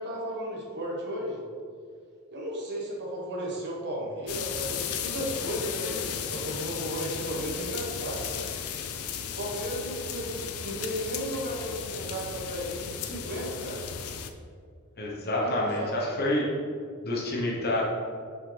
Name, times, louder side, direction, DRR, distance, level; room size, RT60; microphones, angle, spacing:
voice 1, 0.0-1.4 2.3-8.4 9.4-13.8 15.4-16.3, equal, 55° right, -3 dB, 1.4 m, -34 dB
sound 1, 4.3-14.3, left 8 dB, 75° left, 0.5 m, -35 dB
voice 2, 15.0-16.5 17.0-17.8, left 1 dB, 45° left, -4 dB, 1.0 m, -28 dB
6.2 x 5.2 x 3.3 m, 2.2 s
head